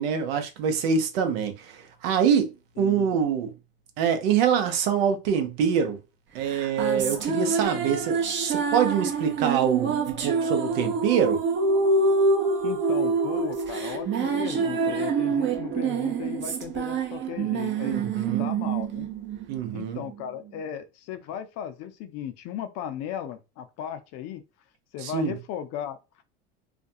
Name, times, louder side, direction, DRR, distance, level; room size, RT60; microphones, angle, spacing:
voice 1, 0.0-2.5 2.8-3.5 4.0-6.0 6.3-11.4 17.8-18.5 19.5-20.0 25.0-25.3, right 7 dB, 75° right, 0.7 m, -25 dB
voice 2, 2.8-3.1 12.6-19.1 19.7-24.4 24.9-26.0, left 9 dB, 55° left, 0.6 m, -36 dB
sound 1, 6.5-20.1, right 4 dB, 40° right, 0.7 m, -26 dB
2.4 x 2.2 x 2.6 m
supercardioid pair, 95°, 30 cm